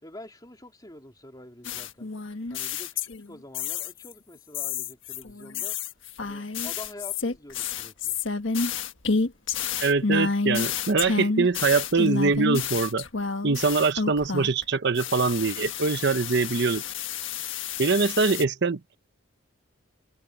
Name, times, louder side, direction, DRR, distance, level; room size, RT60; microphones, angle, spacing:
voice 1, 0.0-2.1 2.5-5.8 6.2-8.2, left 1 dB, 20° left, 3.3 m, -46 dB
sound 1, 1.6-3.3 3.5-4.1 4.5-14.6 15.0-18.4, left 5 dB, 65° left, 1.6 m, -29 dB
voice 2, 9.8-13.1 13.4-16.8 17.8-19.0, right 4 dB, 55° right, 0.8 m, -23 dB
head